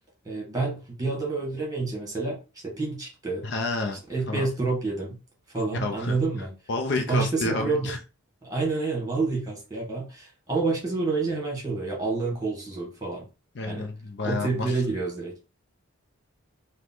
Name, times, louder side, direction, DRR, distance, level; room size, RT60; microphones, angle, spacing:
voice 1, 0.3-2.4 2.6-3.4 4.1-5.2 5.5-6.5 7.1-7.9 8.4-13.2 13.6-13.9 14.2-15.3, right 3 dB, 15° right, 1.6 m, -28 dB
voice 2, 3.4-4.0 4.3-4.5 5.8-6.2 6.7-8.0 13.5-14.8, left 3 dB, 50° left, 0.6 m, -29 dB
4.8 x 2.2 x 3.7 m
head